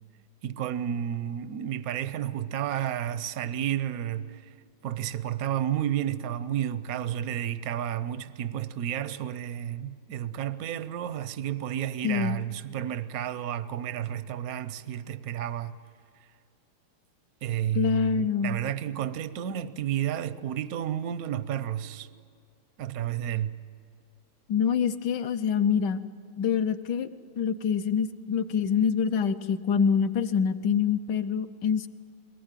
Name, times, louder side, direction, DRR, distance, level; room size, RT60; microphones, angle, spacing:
voice 1, 0.4-4.5 4.8-15.8 17.4-22.1 22.8-23.6, right 10 dB, 70° right, 0.8 m, -31 dB
voice 2, 12.0-12.4 17.7-18.6 24.5-26.0 26.4-27.1 27.4-31.9, left 7 dB, 65° left, 1.2 m, -25 dB
23.0 x 19.0 x 9.0 m
omnidirectional pair, 2.4 m